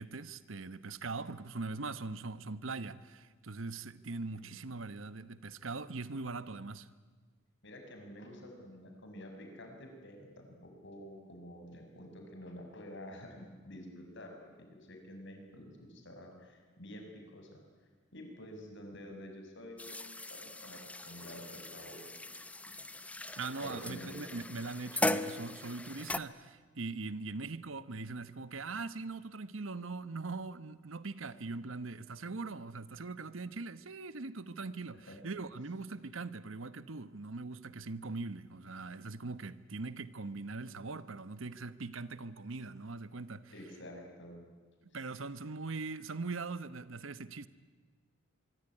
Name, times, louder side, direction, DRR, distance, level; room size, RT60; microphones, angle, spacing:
voice 1, 0.0-6.9 23.4-43.5 44.9-47.5, right 3 dB, 75° right, 1.1 m, -41 dB
voice 2, 7.6-17.6 18.1-22.5 23.6-24.3 34.9-35.2 43.5-44.4 44.9-45.0, equal, 65° left, 6.6 m, -49 dB
sound 1, 19.8-26.2, left 1 dB, 5° left, 0.8 m, -39 dB
24.5 x 24.0 x 9.9 m
head